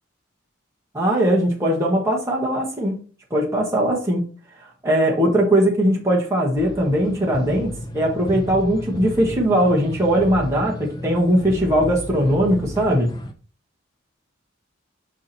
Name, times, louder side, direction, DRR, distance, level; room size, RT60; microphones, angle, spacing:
voice 1, 0.9-3.0 3.3-4.2 4.8-13.1, right 1 dB, 15° right, 1.4 m, -20 dB
sound 1, 6.6-13.3, left 1 dB, 20° left, 0.7 m, -33 dB
5.7 x 4.9 x 4.2 m
head